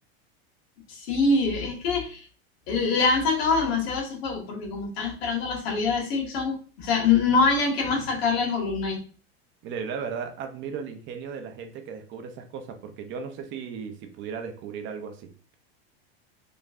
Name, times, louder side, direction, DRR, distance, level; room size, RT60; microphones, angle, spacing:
voice 1, 0.9-2.2 2.7-9.0, left 4 dB, 65° left, 0 dB, 1.8 m, -24 dB
voice 2, 9.6-15.3, right 6 dB, 35° right, 5 dB, 0.7 m, -36 dB
5.1 x 3.7 x 2.6 m, 0.38 s
supercardioid pair, 140°, 32 cm